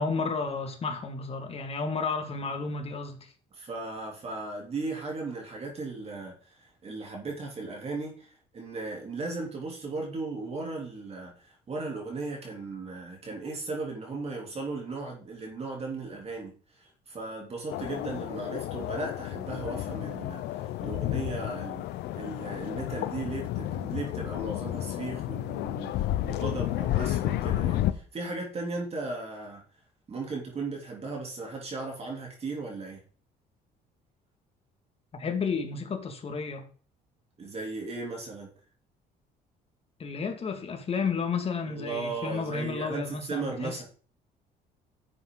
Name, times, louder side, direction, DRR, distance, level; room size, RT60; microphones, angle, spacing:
voice 1, 0.0-3.3 35.1-36.7 40.0-43.8, left 4 dB, 35° left, 2.2 m, -32 dB
voice 2, 3.5-21.9 22.1-29.6 30.1-33.0 37.4-38.5 41.7-43.8, right 3 dB, 35° right, 3.4 m, -36 dB
sound 1, 17.7-27.9, left 14 dB, 80° left, 0.8 m, -31 dB
10.5 x 7.6 x 4.0 m
cardioid pair, 110°, 17 cm